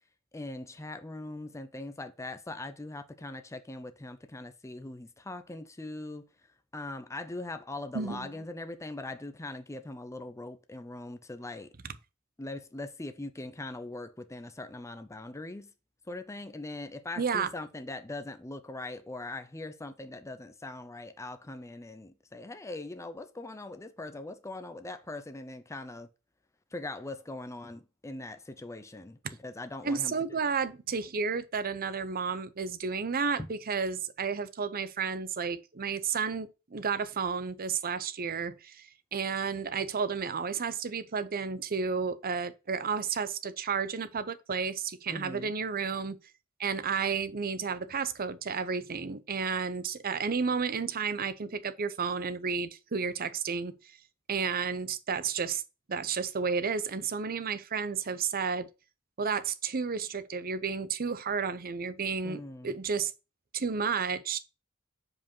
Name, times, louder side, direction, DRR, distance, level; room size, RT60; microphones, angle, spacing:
voice 1, 0.3-6.3 6.7-11.7 12.4-15.7 16.1-26.1 26.7-30.4 33.4-33.5 45.1-45.5 62.2-62.7, left 2 dB, 15° left, 0.5 m, -41 dB
voice 2, 7.9-8.3 17.2-17.5 29.8-38.9 39.1-46.2 46.6-53.7 54.3-55.6 55.9-58.7 59.2-63.1 63.5-64.4, right 5 dB, 45° right, 0.7 m, -32 dB
5.1 x 4.8 x 5.4 m
head